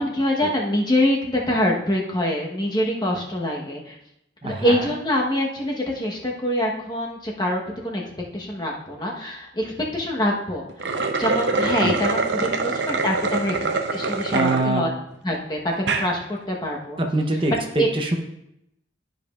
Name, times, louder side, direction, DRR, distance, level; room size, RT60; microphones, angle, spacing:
voice 1, 0.0-3.9 4.4-8.0 8.3-13.6 13.9-14.9 15.2-17.0 17.8-17.9, equal, 25° left, -2 dB, 1.0 m, -25 dB
voice 2, 4.4-4.9 11.8-12.0 14.3-14.8 17.0-18.2, right 2 dB, 30° right, 2 dB, 0.7 m, -24 dB
sound 1, 10.7-14.6 15.1-15.2 15.7-16.1, right 3 dB, 75° right, 0.7 m, -24 dB
12.0 x 5.1 x 2.4 m, 0.80 s
head